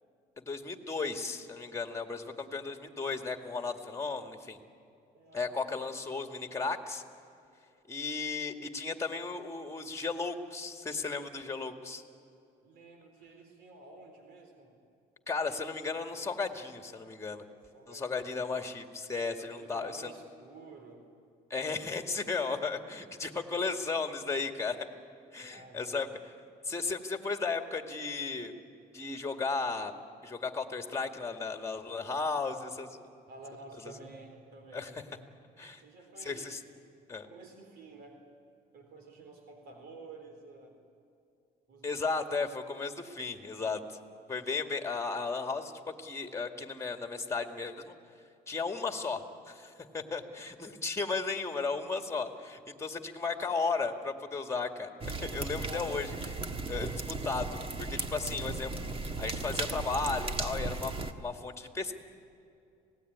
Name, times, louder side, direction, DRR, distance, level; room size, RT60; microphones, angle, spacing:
voice 1, 0.5-4.6 5.3-7.0 7.9-12.0 15.3-17.5 17.9-20.1 21.5-24.9 25.3-26.1 26.6-28.5 28.9-29.9 30.2-33.0 34.7-34.9 35.6-35.8 36.2-36.6 37.1-37.3 41.8-44.0 44.3-45.7 46.0-48.0 48.5-56.1 56.7-58.7 59.0-62.0, left 4 dB, 15° left, 5 dB, 2.1 m, -35 dB
voice 2, 1.7-2.3 5.1-5.9 12.6-14.7 17.7-18.6 19.3-21.0 25.4-26.1 33.3-35.0 35.8-36.5 37.2-38.3 38.7-40.8 41.7-42.1 55.3-56.0, right 2 dB, 75° right, 4 dB, 3.9 m, -51 dB
sound 1, 55.0-61.1, right 3 dB, 35° right, 1.5 m, -36 dB
26.5 x 18.5 x 9.6 m, 2.5 s
cardioid pair, 110°, 17 cm